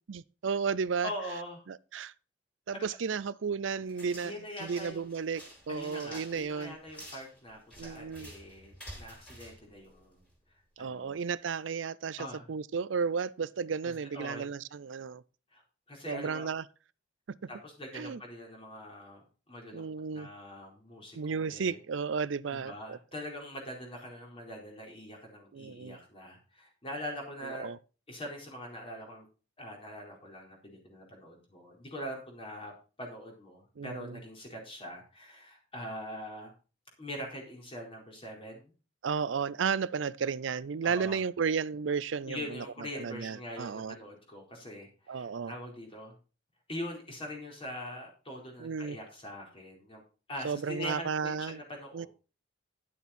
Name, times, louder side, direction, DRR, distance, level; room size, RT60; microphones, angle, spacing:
voice 1, 0.1-1.1 1.7-2.1 2.7-4.3 4.6-6.8 7.8-8.3 10.8-12.2 12.5-15.2 16.1-16.6 17.9-18.2 19.7-20.3 21.1-23.0 25.5-26.0 27.6-27.8 33.8-34.2 39.0-42.6 42.9-44.0 45.1-45.5 48.6-49.0 50.4-51.6 51.9-52.1, right 5 dB, 85° right, 0.5 m, -33 dB
voice 2, 1.0-1.6 2.7-2.9 4.2-5.0 5.7-10.2 10.8-11.2 12.2-12.5 13.8-14.5 15.5-15.6 15.9-16.5 17.5-19.2 19.5-21.8 22.5-27.7 28.1-29.3 29.6-32.7 33.0-36.5 37.0-38.7 40.8-41.2 42.3-46.1 46.7-50.0 50.3-52.1, equal, 30° left, 4.4 m, -43 dB
sound 1, 3.9-10.4, equal, 5° left, 5.2 m, -50 dB
11.0 x 8.2 x 4.3 m
head